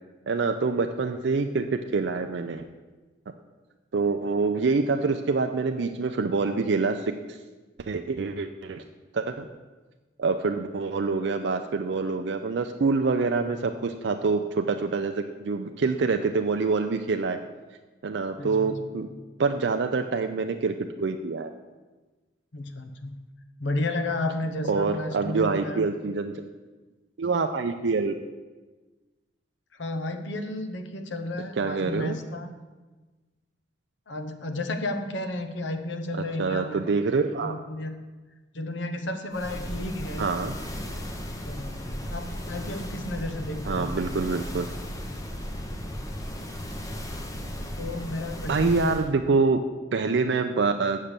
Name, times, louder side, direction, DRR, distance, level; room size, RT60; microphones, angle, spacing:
voice 1, 0.3-2.6 3.9-7.4 7.8-8.8 9.1-9.5 10.2-17.4 18.0-19.1 19.4-21.5 24.7-26.3 27.2-28.1 31.6-32.2 36.1-37.5 40.2-40.5 43.7-44.7 48.5-49.6 49.9-51.0, right 4 dB, 65° right, 6 dB, 0.4 m, -26 dB
voice 2, 18.4-18.8 22.5-23.2 23.6-25.9 29.7-32.5 34.1-36.8 37.4-38.0 38.5-40.3 41.5-43.9 47.8-49.0, left 1 dB, 75° left, 8 dB, 0.8 m, -32 dB
sound 1, 39.3-49.1, equal, 20° left, 0.7 m, -35 dB
7.3 x 6.5 x 6.7 m, 1.2 s
head